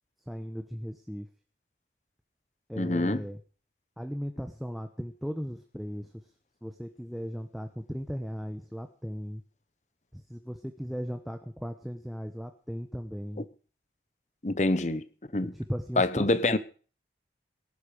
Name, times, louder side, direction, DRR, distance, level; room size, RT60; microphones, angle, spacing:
voice 1, 0.3-1.3 2.7-3.4 4.0-6.2 6.6-9.4 10.1-13.4 15.4-16.6, equal, ahead, 1.0 m, -37 dB
voice 2, 2.8-3.2 14.4-15.0 15.3-15.5 16.0-16.6, left 2 dB, 40° left, 0.9 m, -25 dB
18.0 x 11.0 x 5.0 m
head